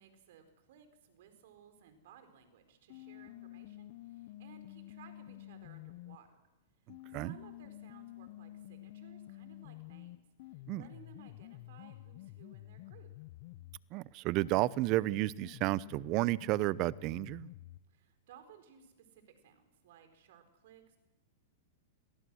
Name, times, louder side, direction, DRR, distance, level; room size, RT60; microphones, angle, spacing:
voice 1, 0.0-6.4 6.8-13.1 17.9-21.0, right 7 dB, 65° right, 4.5 m, -60 dB
sound 1, 2.9-6.2 6.9-13.9 14.4-17.9, left 16 dB, 55° left, 0.8 m, -50 dB
voice 2, 13.9-17.5, right 19 dB, 45° right, 0.7 m, -32 dB
26.5 x 19.0 x 6.4 m
hypercardioid pair, 125°, 0 cm